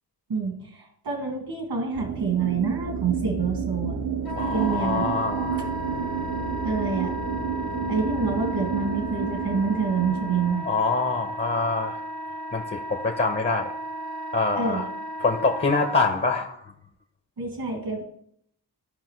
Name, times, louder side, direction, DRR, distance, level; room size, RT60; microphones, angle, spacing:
voice 1, 0.3-4.0 4.5-5.1 6.6-7.2 7.9-10.7 14.6-14.8 17.4-18.0, right 5 dB, 75° right, 1 dB, 2.0 m, -27 dB
sound 1, 1.9-10.5, right 6 dB, 40° right, 0.5 m, -30 dB
Wind instrument woodwind instrument, 4.3-16.0, right 1 dB, 60° left, 0.8 m, -35 dB
voice 2, 4.3-5.7 10.6-12.0 12.5-13.7 14.3-14.9 15.2-16.7, left 3 dB, 30° left, 4 dB, 0.7 m, -25 dB
15.5 x 5.1 x 3.1 m, 0.70 s
wide cardioid pair, 170°, 41 cm